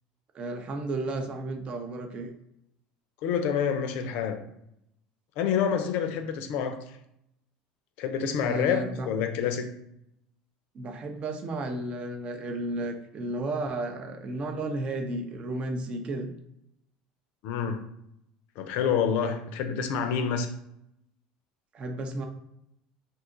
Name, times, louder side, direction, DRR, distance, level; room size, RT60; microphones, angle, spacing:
voice 1, 0.3-2.3 8.4-9.1 10.7-16.3 21.7-22.3, right 2 dB, 40° right, 5 dB, 0.5 m, -33 dB
voice 2, 3.2-4.4 5.4-7.0 8.0-9.8 17.4-17.8 18.6-20.5, left 7 dB, 65° left, 7 dB, 0.4 m, -28 dB
2.7 x 2.3 x 3.8 m, 0.79 s
supercardioid pair, 90°, 3 cm